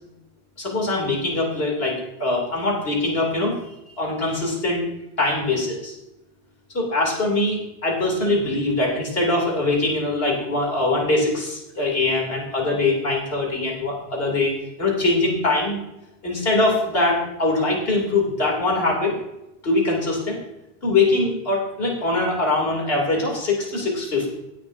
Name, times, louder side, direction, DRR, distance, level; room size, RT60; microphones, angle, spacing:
voice 1, 0.6-3.6 4.0-4.8 5.2-5.9 6.7-15.8 16.2-19.2 19.6-20.4 20.8-24.3, left 2 dB, 70° left, -2 dB, 3.2 m, -22 dB
16.5 x 10.5 x 2.7 m, 0.92 s
omnidirectional pair, 1.0 m